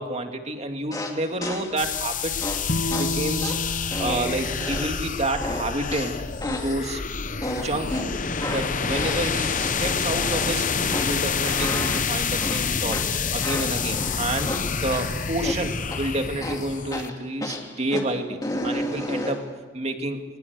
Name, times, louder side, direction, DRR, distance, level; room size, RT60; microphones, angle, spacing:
voice 1, 0.0-2.4 2.9-3.5 4.0-6.2 6.4-7.0 7.6-8.2 8.5-13.0 13.3-19.4 19.7-20.2, right 1 dB, 35° right, 5 dB, 2.2 m, -29 dB
sound 1, 0.9-1.8 2.4-5.1 5.4-6.8 7.4-15.1 15.4-16.1 16.4-19.5, left 1 dB, 20° left, 2.7 m, -33 dB
sound 2, 1.8-17.1, left 6 dB, 45° left, 0.9 m, -28 dB
Bowed string instrument, 2.7-6.0, left 1 dB, 60° left, 1.3 m, -32 dB
22.5 x 21.5 x 8.1 m, 1.3 s
head